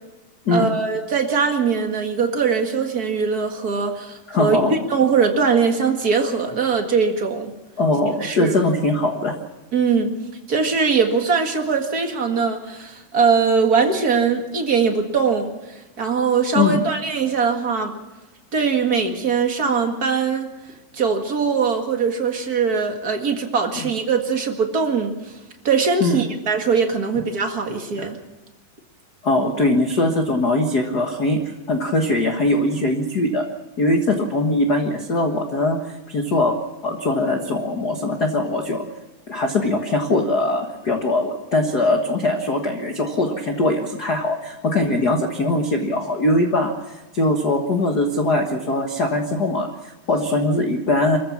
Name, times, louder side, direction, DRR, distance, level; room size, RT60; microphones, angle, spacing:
voice 1, 0.5-4.6 4.9-7.5 8.2-8.6 9.7-10.1 10.5-18.0 18.5-20.5 20.9-25.3 25.6-28.2, right 5 dB, 35° right, 4 dB, 1.7 m, -21 dB
voice 2, 4.3-4.7 7.8-9.3 16.5-16.8 23.7-23.9 26.0-26.2 28.0-28.1 29.2-31.4 31.7-33.5 33.8-36.6 36.8-38.9 39.3-51.2, left 2 dB, 50° left, 4 dB, 1.2 m, -21 dB
25.0 x 14.5 x 7.3 m, 1.0 s
omnidirectional pair, 4.0 m